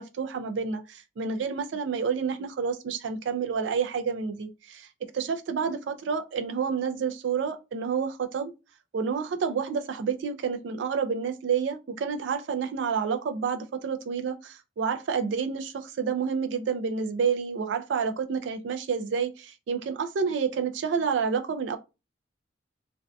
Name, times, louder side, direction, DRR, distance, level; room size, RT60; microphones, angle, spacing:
voice 1, 0.0-4.9 5.1-8.5 8.9-21.8, right 6 dB, 75° right, 0.3 m, -29 dB
2.5 x 2.2 x 2.3 m
head